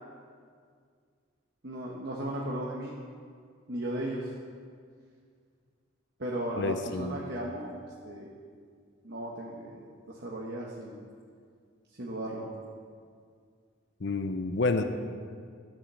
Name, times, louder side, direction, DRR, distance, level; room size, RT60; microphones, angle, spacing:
voice 1, 1.6-3.0 3.7-4.3 6.2-7.7 8.0-8.3 9.0-11.0 12.0-12.5, right 1 dB, 55° right, -4 dB, 1.4 m, -36 dB
voice 2, 6.6-7.2 14.0-14.8, left 3 dB, 60° left, 8 dB, 0.7 m, -29 dB
12.5 x 7.5 x 7.6 m, 2.1 s
head